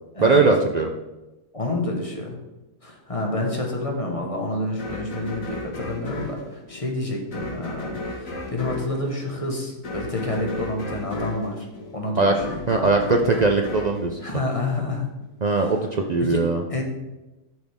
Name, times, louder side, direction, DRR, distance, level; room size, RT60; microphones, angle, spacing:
voice 1, 0.2-0.9 12.2-12.3 12.7-14.2 15.4-16.6, right 3 dB, 80° right, 3 dB, 0.3 m, -20 dB
voice 2, 1.5-2.4 2.8-11.7 11.9-12.6 14.2-15.1 16.2-16.4 16.7-16.8, left 2 dB, 25° left, 0 dB, 1.4 m, -28 dB
sound 1, 4.8-15.0, left 2 dB, 60° left, 2.1 m, -34 dB
12.0 x 6.2 x 3.6 m, 1.0 s
omnidirectional pair, 1.6 m